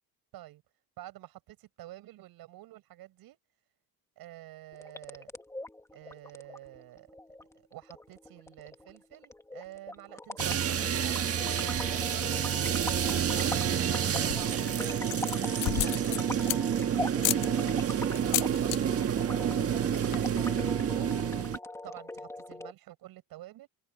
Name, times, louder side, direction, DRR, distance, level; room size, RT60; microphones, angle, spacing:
voice 1, 1.0-3.4 4.2-5.3 5.9-7.1 7.5-12.4 12.8-15.4 15.8-16.5 17.7-19.6 20.1-21.1 21.8-23.7, right 15 dB, 70° right, 7.8 m, -48 dB
sound 1, 4.7-22.7, left 2 dB, 10° left, 1.8 m, -41 dB
sound 2, 10.4-21.6, right 9 dB, 40° right, 1.5 m, -29 dB
sound 3, 14.1-14.6 15.0-16.8 17.2-17.5 18.2-18.8 19.1-19.4 19.7-19.8 20.0-20.4, left 19 dB, 75° left, 0.7 m, -32 dB
open air
cardioid pair, 130°, 37 cm